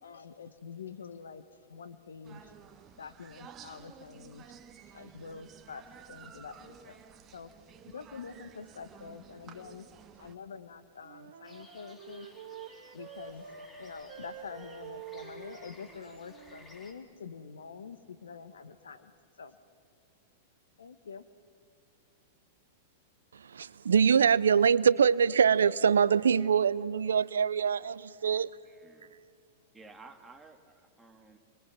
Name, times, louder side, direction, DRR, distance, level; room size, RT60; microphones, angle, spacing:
voice 1, 0.0-1.4 1.7-2.5 3.0-4.4 4.9-7.0 7.3-7.5 7.9-9.9 10.2-12.3 12.9-13.4 13.8-19.1 19.4-19.6 20.8-21.3, left 6 dB, 80° left, 1.3 m, -46 dB
sound 1, 2.2-10.4, right 8 dB, 30° right, 1.4 m, -53 dB
Wind instrument woodwind instrument, 11.0-16.7, right 8 dB, 60° right, 1.7 m, -47 dB
sound 2, 11.4-16.9, left 2 dB, 20° left, 3.6 m, -57 dB
voice 2, 23.3-28.5, right 7 dB, 80° right, 0.5 m, -24 dB
voice 3, 28.6-29.2 29.7-31.4, right 3 dB, 10° right, 2.3 m, -54 dB
29.0 x 22.0 x 6.0 m
hypercardioid pair, 105°, 0 cm